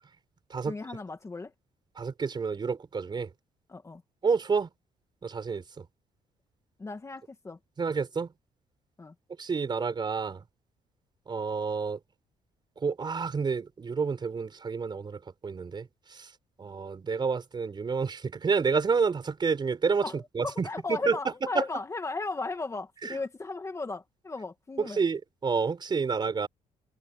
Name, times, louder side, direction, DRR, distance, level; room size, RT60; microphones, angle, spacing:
voice 1, 0.7-1.5 3.7-4.0 6.8-7.6 9.0-9.1 20.0-25.0, left 3 dB, 20° left, 2.1 m, -36 dB
voice 2, 2.0-3.3 4.2-4.7 5.2-5.6 7.8-8.3 9.4-10.4 11.3-12.0 12.8-15.9 16.2-16.3 16.6-20.0 20.3-21.2 24.8-26.5, right 5 dB, 35° right, 4.7 m, -29 dB
cardioid pair, 120°, 14 cm